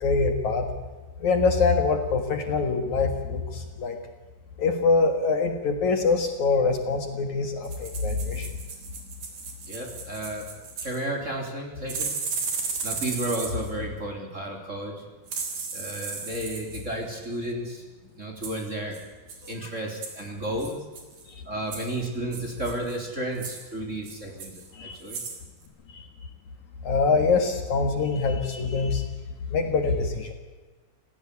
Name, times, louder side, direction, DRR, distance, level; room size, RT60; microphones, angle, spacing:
voice 1, 0.0-0.7 1.2-4.0 4.6-8.5 19.4-19.7 21.3-21.4 24.7-25.0 25.9-26.1 26.8-29.0 29.5-30.3, left 4 dB, 60° left, 5 dB, 2.8 m, -24 dB
sound 1, 7.6-11.0 11.9-13.7 15.3-16.8 18.4-18.6 18.9-19.0 19.3-19.5 20.0-20.2 20.6-21.2 21.7-21.9 22.3-23.0 23.4-23.6 24.1-24.7 25.0-25.4 25.7-25.8, right 5 dB, 60° right, 5.0 m, -35 dB
voice 2, 9.7-10.4 10.8-12.3 12.8-15.0 15.7-17.8 18.2-19.0 19.5-20.8 21.5-25.2, right 1 dB, 20° right, 1 dB, 3.5 m, -32 dB
27.0 x 17.0 x 8.4 m, 1.3 s
omnidirectional pair, 4.2 m